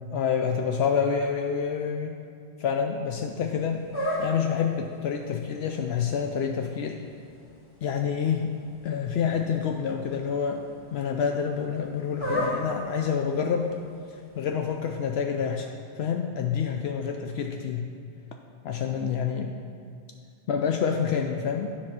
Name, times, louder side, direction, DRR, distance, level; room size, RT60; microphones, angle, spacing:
voice 1, 0.1-2.2 2.6-3.9 4.2-7.0 7.8-8.5 8.8-10.6 10.9-13.8 14.1-17.9 18.6-19.5 20.5-21.7, left 7 dB, 80° left, 3 dB, 0.8 m, -28 dB
sound 1, 3.1-15.0, equal, 20° left, 1.8 m, -38 dB
9.9 x 4.2 x 6.0 m, 2.3 s
omnidirectional pair, 1.1 m